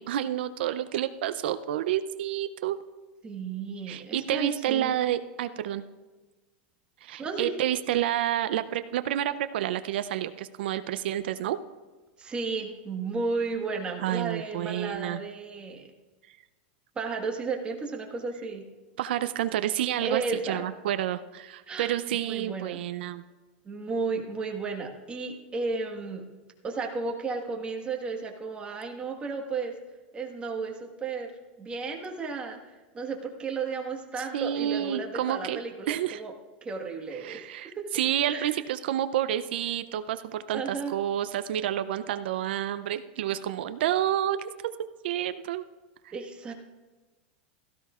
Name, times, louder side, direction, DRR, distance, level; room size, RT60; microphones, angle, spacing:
voice 1, 0.0-2.8 3.9-5.8 7.0-11.6 14.0-15.2 19.0-23.2 34.3-35.6 35.9-36.2 37.2-44.5 45.0-45.7 46.0-46.1, right 11 dB, 75° right, 11 dB, 0.5 m, -29 dB
voice 2, 3.2-4.9 7.2-7.5 12.2-15.9 16.9-18.6 20.0-20.7 21.7-21.9 22.3-22.8 23.6-26.2 26.6-29.7 30.1-31.3 31.6-36.3 36.6-37.4 37.7-37.9 38.3-38.5 40.5-40.9 46.1-46.5, right 4 dB, 20° right, 2 dB, 1.4 m, -33 dB
16.5 x 13.0 x 2.4 m, 1.2 s
supercardioid pair, 135°, 6 cm